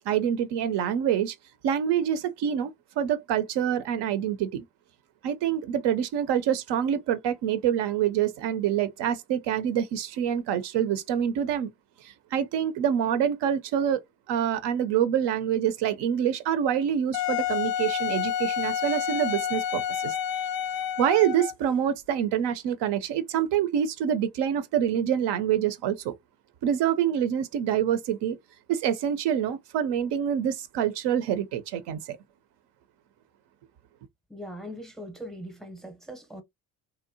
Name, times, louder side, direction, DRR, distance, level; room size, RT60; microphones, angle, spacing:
voice 1, 0.1-1.4 1.6-4.6 5.2-11.7 12.0-14.0 14.3-20.1 21.0-26.1 26.6-28.4 28.7-32.2, right 9 dB, 60° right, 0.5 m, -26 dB
Wind instrument woodwind instrument, 17.1-21.7, left 9 dB, 50° left, 0.5 m, -29 dB
voice 2, 34.3-36.4, equal, ahead, 0.7 m, -40 dB
2.7 x 2.0 x 2.6 m
hypercardioid pair, 65°, 48 cm